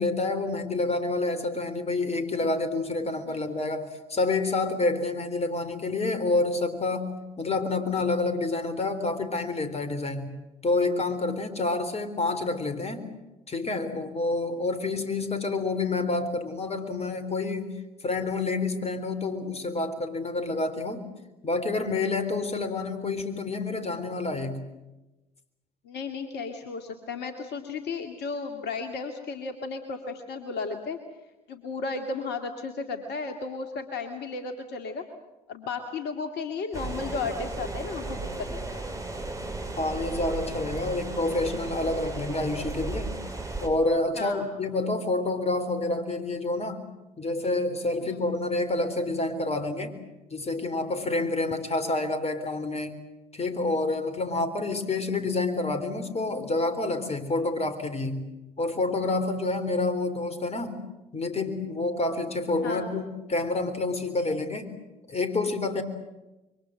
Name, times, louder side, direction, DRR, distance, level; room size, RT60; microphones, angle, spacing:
voice 1, 0.0-13.0 13.5-17.7 18.0-21.1 21.4-24.6 39.8-43.2 43.6-46.8 47.2-50.0 50.3-53.0 53.3-58.3 58.6-60.8 61.1-64.7 65.1-65.8, left 2 dB, 30° left, 10 dB, 4.0 m, -28 dB
voice 2, 25.8-31.0 31.5-35.1 35.5-38.8 44.1-44.5 48.0-48.2 62.6-62.9, left 4 dB, 60° left, 6 dB, 2.2 m, -34 dB
sound 1, 36.7-43.7, right 2 dB, 15° right, 6.4 m, -35 dB
27.0 x 23.5 x 7.8 m, 1.0 s
figure-of-eight pair, 50°, 20 cm